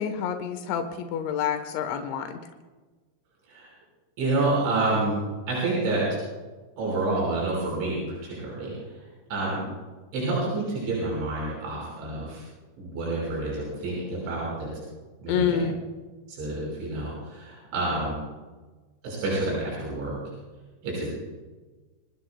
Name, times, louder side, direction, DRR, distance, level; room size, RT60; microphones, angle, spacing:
voice 1, 0.0-2.4 15.3-15.7, left 8 dB, 80° left, 7 dB, 3.6 m, -27 dB
voice 2, 4.2-5.2 5.5-6.2 6.8-8.9 9.3-9.6 10.1-12.4 12.8-14.7 15.2-15.6 16.3-18.2 19.0-20.2 20.8-21.2, right 2 dB, 85° right, -5 dB, 7.8 m, -28 dB
28.0 x 20.0 x 2.3 m, 1.3 s
omnidirectional pair, 5.2 m